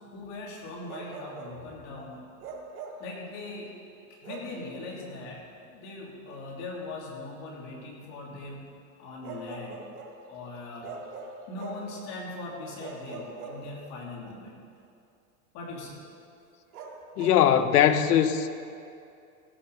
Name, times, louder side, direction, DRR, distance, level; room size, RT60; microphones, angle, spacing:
voice 1, 0.1-2.3 3.0-3.7 4.2-8.6 9.0-9.8 10.3-11.0 11.5-14.6 15.5-16.0, left 2 dB, 35° left, -2 dB, 2.7 m, -40 dB
Bark, 0.9-1.6 2.4-3.1 4.2-4.6 6.3-6.4 9.2-10.2 10.8-11.9 12.8-14.1 16.7-17.5, right 4 dB, 80° right, 2.0 m, -42 dB
voice 2, 17.2-18.5, left 9 dB, 85° left, 11 dB, 1.0 m, -21 dB
16.5 x 7.0 x 6.7 m, 2.5 s
supercardioid pair, 160°, 45 cm